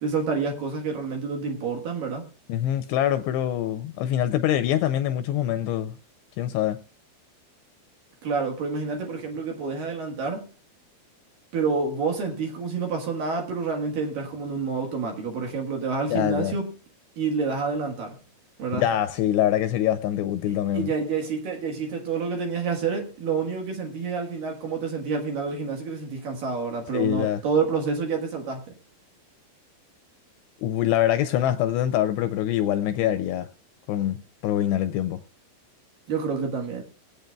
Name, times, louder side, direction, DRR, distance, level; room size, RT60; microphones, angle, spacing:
voice 1, 0.0-2.3 8.2-10.5 11.5-16.7 17.2-18.2 18.6-18.8 20.5-28.6 36.1-36.8, right 5 dB, 60° right, 2.6 m, -28 dB
voice 2, 2.5-6.0 6.4-6.8 16.1-16.5 18.8-20.9 26.9-27.4 30.6-33.5 33.9-34.2 34.4-35.2, left 11 dB, 80° left, 2.5 m, -24 dB
22.0 x 8.8 x 2.3 m
omnidirectional pair, 5.3 m